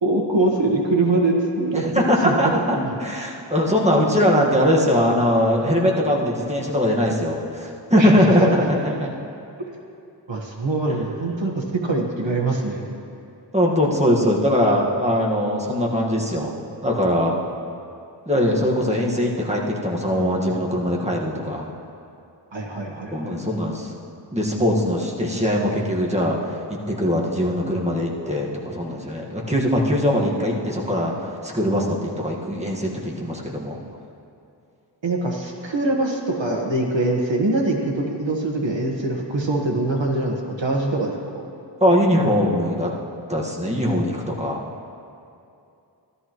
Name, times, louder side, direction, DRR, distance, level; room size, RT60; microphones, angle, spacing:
voice 1, 0.0-1.8 2.2-2.9 3.7-3.8 8.0-8.1 9.6-9.8 10.3-12.9 22.5-23.5 35.0-41.5, right 2 dB, 75° right, 0 dB, 1.5 m, -23 dB
voice 2, 1.7-9.1 13.5-16.5 16.8-17.4 18.3-21.7 23.1-23.9 24.3-26.4 26.7-33.8 41.8-42.9 43.3-44.6, equal, 15° right, -2 dB, 1.6 m, -21 dB
14.0 x 12.5 x 3.1 m, 2.6 s
wide cardioid pair, 60°, 45 cm